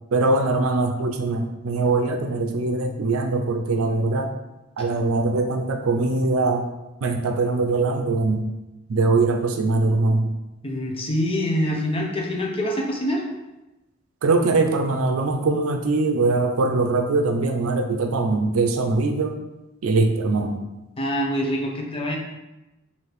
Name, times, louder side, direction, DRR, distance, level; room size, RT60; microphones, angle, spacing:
voice 1, 0.1-4.3 4.8-6.7 7.0-8.4 8.9-10.3 14.2-19.4 19.8-20.6, right 3 dB, 85° right, 5 dB, 0.4 m, -22 dB
voice 2, 10.6-13.2 21.0-22.2, equal, 25° left, -1 dB, 0.7 m, -25 dB
4.8 x 2.7 x 3.1 m, 1.0 s
head